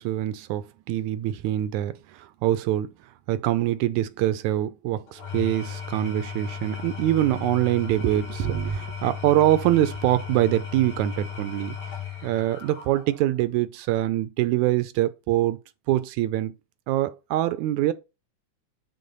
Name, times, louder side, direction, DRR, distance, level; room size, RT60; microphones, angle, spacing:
voice 1, 0.0-2.9 3.3-11.8 12.2-15.6 15.9-16.5 16.9-17.9, right 14 dB, 80° right, 1.8 m, -24 dB
Engine / Tools, 5.1-13.4, left 7 dB, 75° left, 4.0 m, -36 dB
8.3 x 3.8 x 5.3 m
omnidirectional pair, 3.7 m